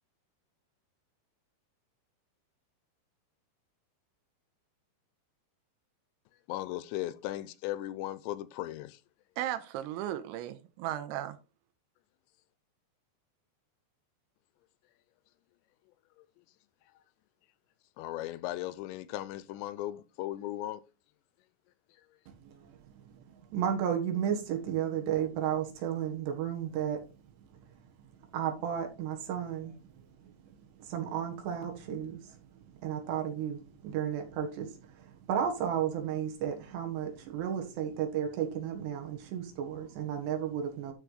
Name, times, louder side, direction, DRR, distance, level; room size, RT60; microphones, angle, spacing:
voice 1, 6.5-9.0 16.2-16.3 18.0-20.8, left 15 dB, 85° left, 2.6 m, -37 dB
voice 2, 9.4-11.4, right 12 dB, 90° right, 3.1 m, -36 dB
voice 3, 22.4-22.8 23.5-27.0 28.3-30.3 30.8-32.4 32.8-40.9, right 9 dB, 70° right, 3.4 m, -33 dB
12.5 x 4.8 x 3.9 m
omnidirectional pair, 5.4 m